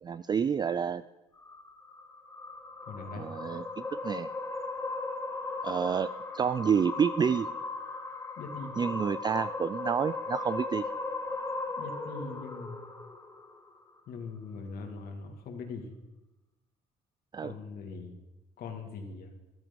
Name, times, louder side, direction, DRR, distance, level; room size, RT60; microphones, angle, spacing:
voice 1, 0.0-1.0 3.1-4.3 5.6-7.5 8.8-10.8 17.3-17.5, right 7 dB, 25° right, 15 dB, 0.3 m, -29 dB
sound 1, 1.3-13.8, left 3 dB, 15° left, 1.8 m, -37 dB
voice 2, 2.9-3.3 8.4-8.8 11.8-12.8 14.1-15.9 17.4-18.2 18.6-19.3, left 4 dB, 65° left, 3 dB, 2.1 m, -41 dB
13.5 x 12.0 x 5.3 m, 1.0 s
cardioid pair, 110°, 17 cm